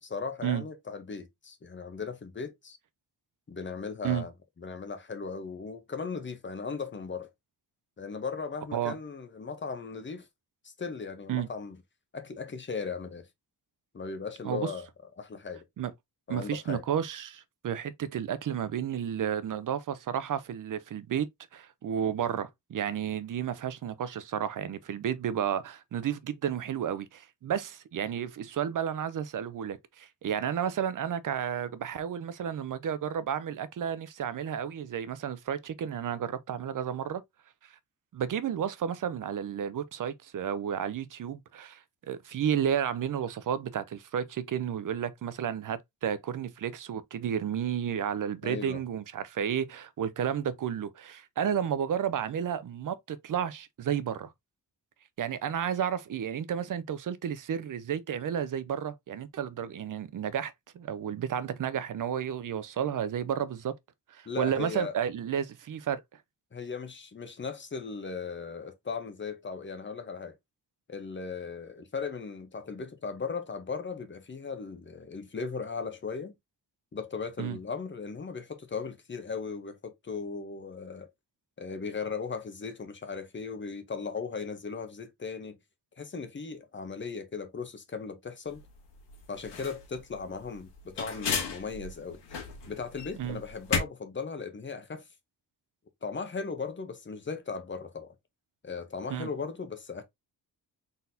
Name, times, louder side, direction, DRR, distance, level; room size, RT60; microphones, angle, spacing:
voice 1, 0.0-2.8 3.5-4.3 4.6-7.3 8.0-10.3 10.6-11.8 12.1-13.3 13.9-14.9 15.2-15.6 16.3-16.8 48.4-48.8 64.3-64.9 66.5-70.3 70.9-76.3 76.9-81.1 81.6-85.6 86.0-88.6 89.3-92.2 92.7-95.1 96.0-98.1 98.6-100.0, left 5 dB, 30° left, 0.8 m, -37 dB
voice 2, 16.3-37.2 38.1-54.3 55.2-63.7 64.1-66.0 77.4-77.6 93.2-93.4 99.1-99.3, right 9 dB, 50° right, 0.6 m, -32 dB
sound 1, 88.5-93.8, left 6 dB, 80° left, 1.5 m, -35 dB
4.1 x 4.0 x 2.6 m
wide cardioid pair, 145°, 41 cm